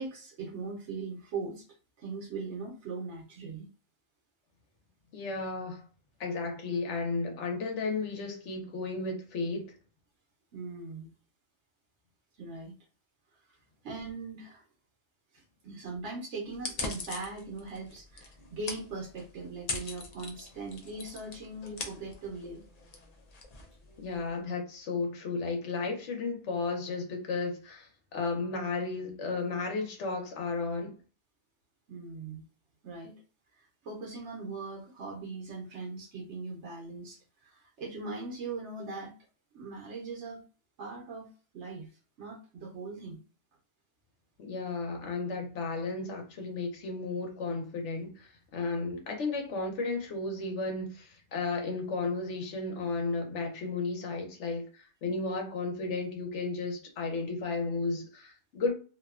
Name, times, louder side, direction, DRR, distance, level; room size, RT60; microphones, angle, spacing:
voice 1, 0.0-1.6 2.0-3.7 10.5-11.1 12.4-12.7 13.3-13.6 13.8-14.6 15.3-22.6 31.9-32.4 32.8-33.2 33.5-39.1 39.5-40.4 40.8-41.9 42.2-43.2, right 3 dB, 85° right, 1.1 m, -40 dB
voice 2, 5.1-5.8 6.2-9.7 24.0-31.0 44.4-58.7, left 3 dB, 85° left, 1.1 m, -34 dB
sound 1, 16.5-24.3, left 3 dB, 50° left, 0.5 m, -42 dB
2.7 x 2.2 x 2.3 m
omnidirectional pair, 1.2 m